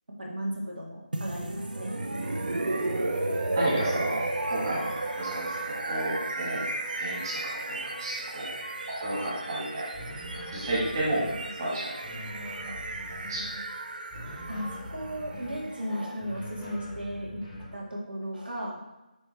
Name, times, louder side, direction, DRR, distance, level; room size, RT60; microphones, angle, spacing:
voice 1, 0.2-2.0 14.5-17.4 17.7-18.8, equal, 90° right, -2 dB, 2.0 m, -35 dB
sound 1, 1.1-17.0, right 2 dB, 70° right, 0.8 m, -34 dB
voice 2, 3.5-5.5 5.8-6.7 7.0-7.4 7.7-8.6 8.9-9.9 10.5-11.2 11.6-12.1 13.1-13.5, right 1 dB, 25° right, -7 dB, 1.5 m, -32 dB
sound 2, 9.9-11.5 12.0-13.6 14.1-15.7 16.2-17.8, left 1 dB, 5° right, 0.8 m, -42 dB
9.8 x 3.3 x 3.3 m, 1.0 s
figure-of-eight pair, 175°, 5 cm